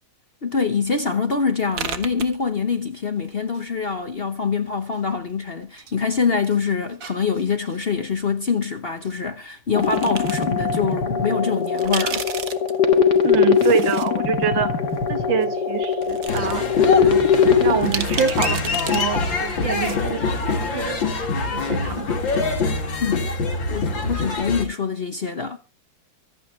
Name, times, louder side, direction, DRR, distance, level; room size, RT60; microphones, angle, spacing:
voice 1, 0.4-12.3 23.0-23.3 23.7-25.6, left 5 dB, 40° left, 0.9 m, -24 dB
sound 1, 1.7-3.0 3.2-4.2 4.9-5.9 6.2-7.8 9.0-9.1 9.8-10.4 10.9-11.0 11.6-14.1 14.4-14.5 15.4-15.5 15.9-16.5 16.9-17.0 17.8-19.0 19.3-19.4 19.6-20.0, right 6 dB, 50° right, 1.5 m, -33 dB
sound 2, 9.8-17.8, left 6 dB, 60° left, 2.2 m, -20 dB
voice 2, 13.2-14.7 15.1-17.2 17.6-21.0 21.5-22.2, right 7 dB, 80° right, 1.9 m, -26 dB
sound 3, 16.3-24.6, left 4 dB, 75° left, 3.2 m, -24 dB
24.5 x 8.5 x 3.2 m
omnidirectional pair, 2.1 m